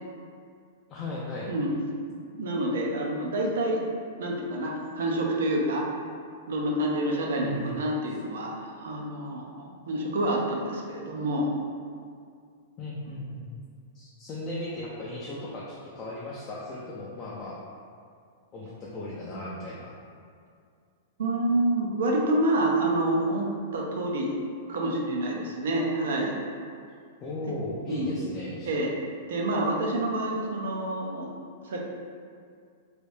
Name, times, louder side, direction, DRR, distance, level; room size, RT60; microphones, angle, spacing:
voice 1, 0.9-1.5 7.4-7.8 12.8-13.5 13.9-17.6 18.5-19.9 27.2-28.7, left 1 dB, 20° left, -6 dB, 0.4 m, -36 dB
voice 2, 1.5-1.8 2.4-3.8 4.2-5.9 6.5-11.5 21.2-24.4 24.7-26.4 27.9-28.1 28.7-28.9 29.3-31.3 31.6-31.8, right 1 dB, 75° right, -1 dB, 0.6 m, -28 dB
3.2 x 2.6 x 3.2 m, 2.3 s
supercardioid pair, 170°, 0 cm